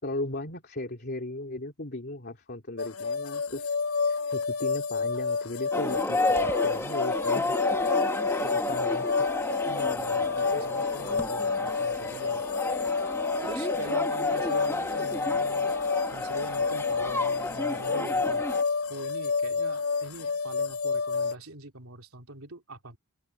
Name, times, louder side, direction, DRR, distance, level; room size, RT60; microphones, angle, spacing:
voice 1, 0.0-3.8 4.1-7.6 8.4-9.1, left 2 dB, 50° left, 2.9 m, -37 dB
sound 1, 2.8-21.3, left 5 dB, 85° left, 1.1 m, -29 dB
sound 2, 5.7-18.6, left 2 dB, 10° left, 1.6 m, -31 dB
voice 2, 9.7-12.4 13.4-15.7 16.1-18.5 18.9-23.0, right 2 dB, 75° right, 3.6 m, -43 dB
head